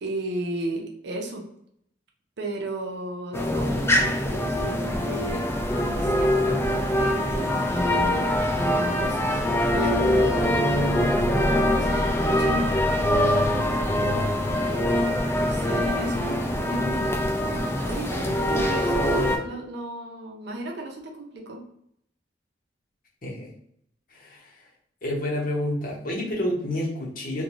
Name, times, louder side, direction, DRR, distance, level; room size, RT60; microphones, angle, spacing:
voice 1, 0.0-1.4 2.4-5.5 5.8-8.4 8.9-12.7 15.4-17.2 17.8-21.6, right 2 dB, 65° right, 1 dB, 0.6 m, -35 dB
sound 1, 3.3-19.4, left 1 dB, 15° left, 0.3 m, -23 dB
voice 2, 23.2-23.5 24.1-24.6 25.0-27.4, left 1 dB, 50° left, -3 dB, 0.9 m, -29 dB
2.5 x 2.2 x 2.9 m, 0.71 s
head